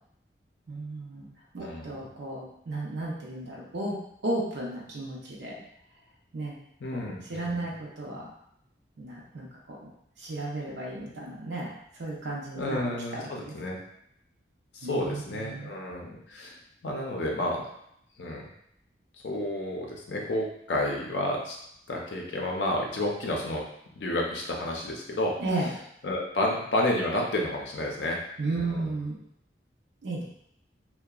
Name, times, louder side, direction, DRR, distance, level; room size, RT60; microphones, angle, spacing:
voice 1, 0.7-1.3 1.5-4.0 4.2-5.5 6.3-6.6 6.9-8.3 9.0-9.9 10.2-11.7 12.0-12.8 13.1-13.5 14.8-15.7 25.4-25.7 28.4-29.2 30.0-30.2, right 2 dB, 80° right, -4 dB, 0.5 m, -34 dB
voice 2, 6.8-7.7 12.6-13.8 14.7-16.6 16.8-17.6 18.2-18.5 19.2-21.6 21.9-23.6 24.0-25.3 26.0-28.2, left 1 dB, 75° left, -1 dB, 0.5 m, -30 dB
2.7 x 2.1 x 2.3 m, 0.74 s
head